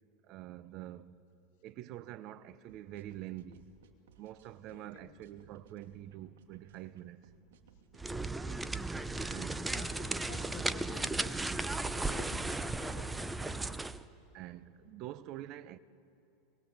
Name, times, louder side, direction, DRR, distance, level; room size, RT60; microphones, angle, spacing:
voice 1, 0.2-1.1 1.6-3.7 4.2-7.3 9.3-9.7 12.6-12.7 14.3-15.8, right 13 dB, 50° right, 0.8 m, -46 dB
sound 1, 2.7-14.1, right 6 dB, 80° right, 2.6 m, -63 dB
voice 2, 4.7-5.2 8.2-9.4 9.7-12.5 12.8-13.8, left 9 dB, 60° left, 2.2 m, -52 dB
sound 2, 8.0-14.0, right 2 dB, 10° right, 0.7 m, -35 dB
28.0 x 21.0 x 8.1 m
hypercardioid pair, 115°, 0 cm